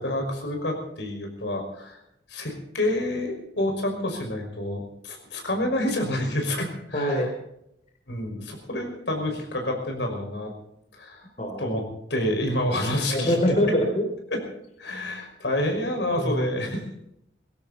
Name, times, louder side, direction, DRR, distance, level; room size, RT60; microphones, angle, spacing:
voice 1, 0.0-2.0 2.3-7.3 8.1-10.5 11.0-11.3 11.6-11.8 12.1-13.4 14.3-14.4 14.8-16.8, left 1 dB, 90° left, 3 dB, 5.7 m, -28 dB
voice 2, 6.9-7.3 11.4-11.8 13.1-14.1 16.2-16.5, equal, 40° left, 4 dB, 2.9 m, -24 dB
19.5 x 16.0 x 4.2 m, 0.79 s
head